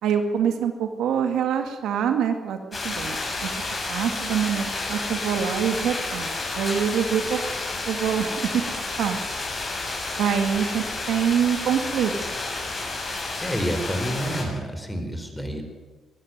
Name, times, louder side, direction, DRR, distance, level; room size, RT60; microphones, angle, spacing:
voice 1, 0.0-2.6 2.8-3.6 3.9-6.3 6.6-7.4 7.9-8.6 9.0-9.2 10.2-12.1, right 8 dB, 80° right, 6 dB, 2.1 m, -25 dB
sound 1, 2.7-14.4, left 2 dB, 30° left, 7.3 m, -30 dB
voice 2, 13.4-15.6, equal, 5° left, 6 dB, 4.3 m, -28 dB
23.0 x 12.5 x 9.5 m, 1.4 s
cardioid pair, 90°, 0 cm